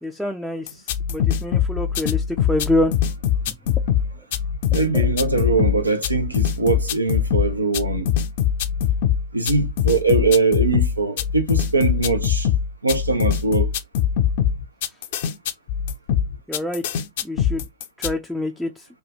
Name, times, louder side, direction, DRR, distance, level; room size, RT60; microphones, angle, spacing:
voice 1, 0.0-0.8 1.1-2.9 3.5-3.6 4.9-5.0 16.5-17.7 18.0-18.9, left 1 dB, ahead, 0.4 m, -26 dB
sound 1, 0.7-18.1, left 9 dB, 55° left, 0.5 m, -22 dB
voice 2, 4.7-8.1 9.3-12.5 12.8-13.7, right 3 dB, 80° right, 0.7 m, -21 dB
3.2 x 2.3 x 3.9 m
figure-of-eight pair, 90°, 0 cm